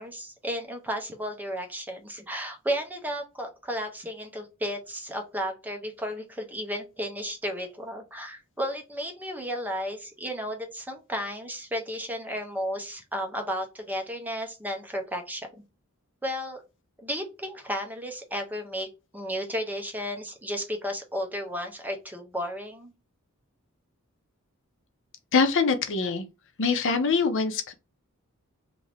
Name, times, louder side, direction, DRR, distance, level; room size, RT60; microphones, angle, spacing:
voice 1, 0.0-15.6 16.2-16.6 17.0-22.9, equal, 10° right, 0.7 m, -33 dB
voice 2, 25.3-26.2 26.6-27.7, left 4 dB, 60° left, 0.6 m, -24 dB
2.7 x 2.6 x 3.2 m
head